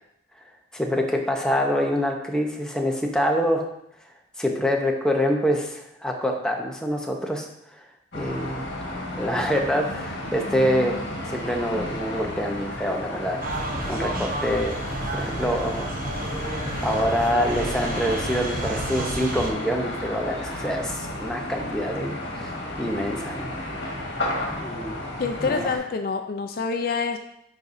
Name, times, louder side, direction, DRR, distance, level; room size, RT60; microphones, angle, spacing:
voice 1, 0.7-3.6 4.4-7.4 8.1-8.6 9.1-14.8 15.1-15.9 16.8-23.5 24.5-25.0 25.4-25.6, equal, 5° left, 1 dB, 0.7 m, -26 dB
sound 1, 8.1-25.8, left 1 dB, 70° left, 1.5 m, -33 dB
sound 2, 13.4-19.5, right 2 dB, 50° right, 0.7 m, -31 dB
voice 2, 25.2-27.2, left 4 dB, 50° left, 6 dB, 0.4 m, -26 dB
9.8 x 4.1 x 2.6 m, 0.77 s
head